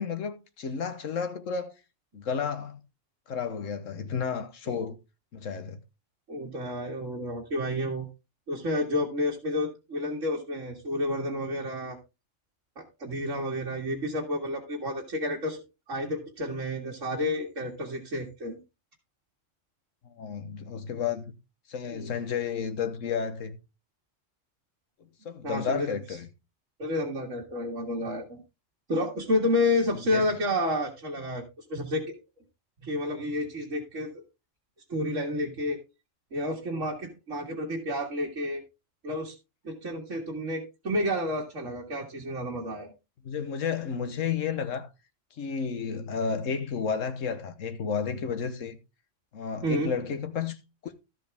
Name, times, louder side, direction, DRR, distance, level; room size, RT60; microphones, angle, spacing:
voice 1, 0.0-1.7 2.1-2.8 3.3-5.0 5.3-5.8 20.0-21.3 21.7-23.6 25.2-26.3 30.1-30.3 43.2-44.9 45.4-48.8 49.3-50.6 50.8-50.9, left 6 dB, 90° left, 1.4 m, -32 dB
voice 2, 6.3-8.1 8.5-12.0 12.8-15.6 15.9-18.6 21.9-22.1 25.4-25.9 26.8-28.4 28.9-31.4 31.7-32.2 32.8-34.2 34.9-35.8 36.3-38.6 39.0-39.3 39.6-42.9 49.6-49.9, left 1 dB, 75° right, 2.3 m, -30 dB
13.0 x 7.6 x 3.5 m
omnidirectional pair, 1.3 m